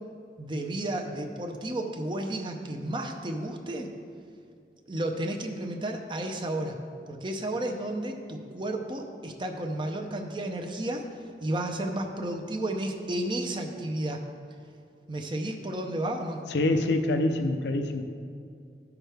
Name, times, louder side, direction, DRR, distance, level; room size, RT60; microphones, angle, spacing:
voice 1, 0.4-3.9 4.9-6.8 7.1-11.1 11.4-14.2 15.1-16.4, right 1 dB, 25° right, 3 dB, 0.6 m, -32 dB
voice 2, 16.5-18.0, left 2 dB, 75° left, 6 dB, 0.6 m, -25 dB
14.0 x 6.0 x 3.4 m, 2.3 s
head